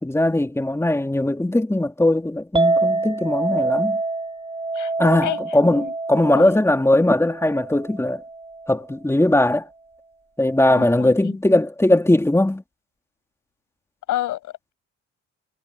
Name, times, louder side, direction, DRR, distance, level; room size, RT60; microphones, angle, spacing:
voice 1, 0.0-4.0 5.0-8.2 8.7-9.7 10.4-12.6, left 1 dB, 10° left, 2.8 m, -19 dB
Chink clink, 2.6-8.8, right 3 dB, 15° right, 4.3 m, -26 dB
voice 2, 10.8-11.3 14.1-14.4, left 13 dB, 85° left, 7.2 m, -28 dB
cardioid pair, 90°, 30 cm